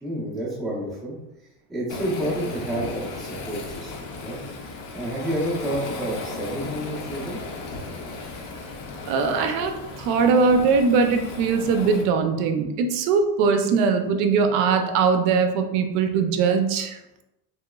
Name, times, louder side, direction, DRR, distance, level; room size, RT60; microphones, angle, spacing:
voice 1, 0.0-1.2 1.7-4.4 4.9-7.4, right 1 dB, ahead, -8 dB, 0.5 m, -29 dB
Waves surf, 1.9-12.0, left 3 dB, 50° left, 0.6 m, -36 dB
voice 2, 9.1-17.0, right 5 dB, 70° right, 6 dB, 0.5 m, -21 dB
3.1 x 3.0 x 2.2 m, 0.92 s
cardioid pair, 160°, 46 cm